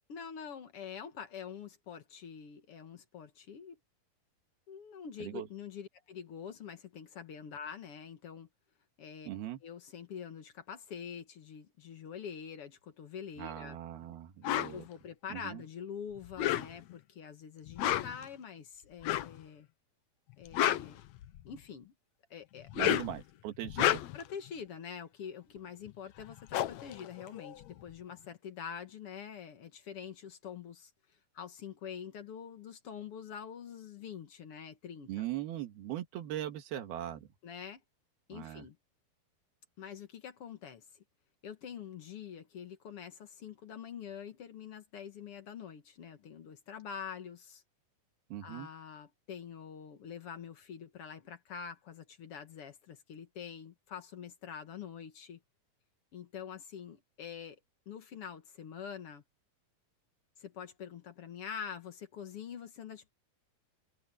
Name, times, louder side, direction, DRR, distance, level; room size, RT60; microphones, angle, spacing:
voice 1, 0.1-3.8 4.7-8.5 9.0-9.3 9.6-13.8 14.7-19.7 20.4-21.0 21.4-21.9 22.3-23.0 24.1-30.9 31.3-35.3 37.4-37.8 38.3-38.8 39.8-41.0 41.4-47.6 48.4-55.4 56.1-57.6 57.9-59.2 60.4-63.1, left 7 dB, 50° left, 1.9 m, -45 dB
voice 2, 9.3-9.6 13.4-14.8 15.3-15.6 22.7-24.0 35.1-37.3 38.3-38.7 48.3-48.7, right 12 dB, 90° right, 3.7 m, -40 dB
sound 1, 14.4-14.7 16.2-17.0 17.7-18.3 19.0-19.4 20.3-21.6 22.6-23.2 23.6-24.3 25.9-26.0 26.2-27.9, left 13 dB, 85° left, 1.6 m, -31 dB
omnidirectional pair, 4.3 m